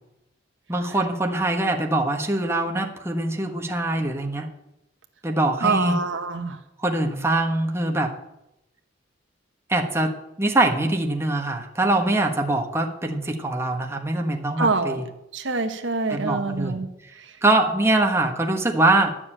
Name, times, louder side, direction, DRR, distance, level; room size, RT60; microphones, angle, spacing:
voice 1, 0.7-4.5 5.2-6.0 6.8-8.1 9.7-10.1 10.4-15.1 16.1-16.8 17.4-19.1, right 2 dB, 15° right, 2 dB, 1.3 m, -23 dB
voice 2, 5.6-6.6 14.6-15.0 15.3-16.9, right 3 dB, 75° right, 7 dB, 1.2 m, -25 dB
12.0 x 6.9 x 8.9 m, 0.86 s
head